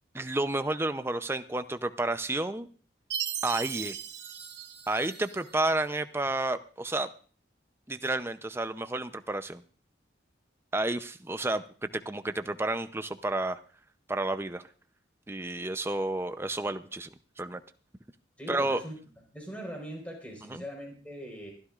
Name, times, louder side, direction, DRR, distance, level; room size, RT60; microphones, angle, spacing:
voice 1, 0.1-2.7 3.4-4.0 4.9-7.1 7.9-9.6 10.7-13.6 14.1-14.6 15.3-17.1 17.4-17.6 18.5-18.8 20.5-20.6, right 2 dB, 10° right, 10 dB, 0.5 m, -31 dB
Chime, 3.1-5.6, right 9 dB, 65° right, 1.2 m, -37 dB
voice 2, 18.4-19.0 19.3-21.5, equal, 5° left, 0 dB, 4.4 m, -41 dB
24.0 x 13.0 x 2.4 m, 0.41 s
head